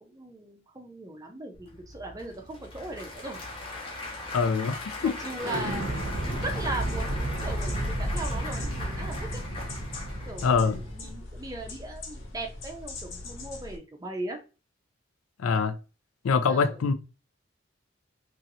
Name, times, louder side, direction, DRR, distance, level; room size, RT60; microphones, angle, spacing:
voice 1, 0.0-3.4 3.9-4.1 5.0-5.9 6.3-9.4 10.3-14.4 16.4-16.8, right 2 dB, 15° right, 0.5 m, -38 dB
Applause / Crowd, 1.5-11.1, left 2 dB, 25° left, 0.8 m, -40 dB
voice 2, 4.3-5.2 5.7-5.8 10.4-10.8 15.4-15.7 16.2-16.9, left 5 dB, 90° left, 0.4 m, -24 dB
Explosion, 5.4-10.9, right 1 dB, 65° right, 0.6 m, -32 dB
sound 1, 6.0-13.8, left 2 dB, 70° left, 0.8 m, -42 dB
3.0 x 2.7 x 2.7 m
head